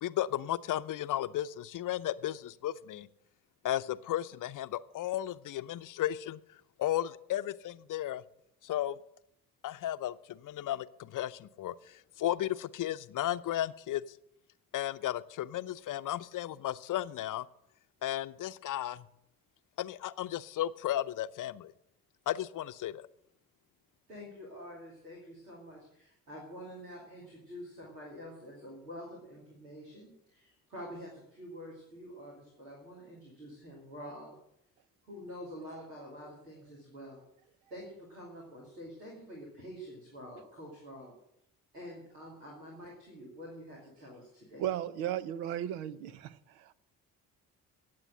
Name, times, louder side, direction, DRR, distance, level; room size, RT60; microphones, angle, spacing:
voice 1, 0.0-3.1 3.6-6.4 6.8-8.2 8.6-9.0 9.6-14.0 14.7-17.5 18.0-19.1 19.8-21.7 22.3-23.1, left 13 dB, 45° left, 13 dB, 0.7 m, -34 dB
voice 2, 24.1-34.3 35.1-37.2 37.7-41.1 41.7-44.6, equal, 85° right, -4 dB, 2.8 m, -47 dB
voice 3, 44.6-46.7, right 11 dB, 70° right, 16 dB, 0.9 m, -35 dB
17.0 x 7.7 x 7.7 m, 0.79 s
figure-of-eight pair, 45°, 45 cm